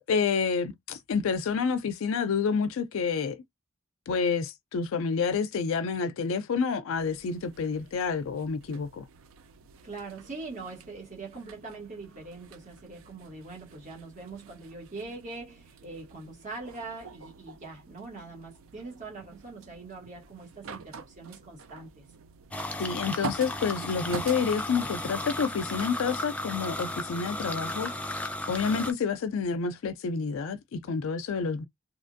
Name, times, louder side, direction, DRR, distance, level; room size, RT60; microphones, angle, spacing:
voice 1, 0.1-3.4 4.1-9.0 22.8-27.9 28.5-31.6, left 5 dB, 80° left, 0.4 m, -29 dB
sound 1, 7.0-25.6, right 4 dB, 85° right, 0.4 m, -46 dB
voice 2, 9.8-22.0, right 3 dB, 40° right, 1.2 m, -42 dB
sound 2, 22.5-28.9, left 1 dB, 5° left, 0.3 m, -35 dB
2.8 x 2.4 x 2.5 m
head